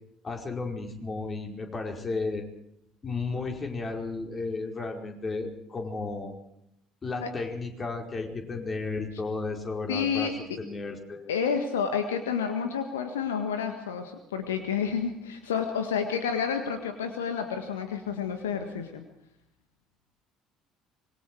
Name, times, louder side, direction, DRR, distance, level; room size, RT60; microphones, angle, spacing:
voice 1, 0.2-2.4 3.0-6.3 7.0-10.3 10.6-11.3, left 3 dB, 30° left, 2 dB, 4.8 m, -33 dB
voice 2, 9.9-10.3 11.3-19.0, left 7 dB, 75° left, 7 dB, 1.7 m, -30 dB
26.0 x 22.0 x 4.8 m, 0.79 s
figure-of-eight pair, 55°, 0 cm